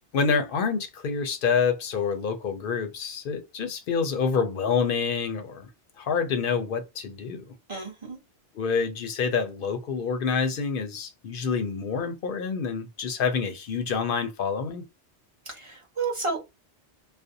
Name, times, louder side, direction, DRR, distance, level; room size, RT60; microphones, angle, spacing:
voice 1, 0.1-5.7 6.0-7.5 8.5-14.8, left 5 dB, 60° left, 0.6 m, -27 dB
voice 2, 7.7-8.2 15.4-16.4, right 4 dB, 30° right, 0.8 m, -31 dB
2.5 x 2.0 x 2.6 m
omnidirectional pair, 1.2 m